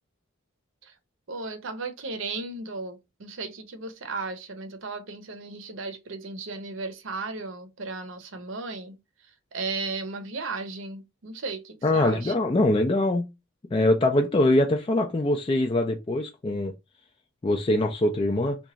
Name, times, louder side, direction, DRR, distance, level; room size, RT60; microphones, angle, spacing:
voice 1, 1.3-9.0 9.5-12.3, right 3 dB, 65° right, 0.7 m, -35 dB
voice 2, 11.8-13.3 13.7-16.7 17.4-18.6, left 1 dB, 25° left, 0.3 m, -23 dB
3.0 x 2.3 x 3.8 m
head